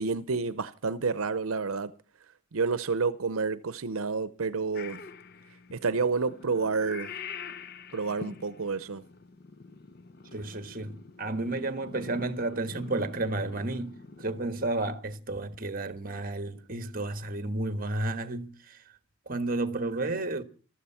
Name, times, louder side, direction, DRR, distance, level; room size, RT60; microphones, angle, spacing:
voice 1, 0.0-1.9 2.5-5.0 5.7-7.1 7.9-9.0, right 4 dB, 80° right, 0.7 m, -29 dB
Purr / Meow, 4.7-14.7, left 5 dB, 45° left, 0.7 m, -45 dB
voice 2, 10.3-18.8 19.3-20.4, right 2 dB, 40° right, 1.4 m, -32 dB
14.5 x 13.0 x 5.7 m
head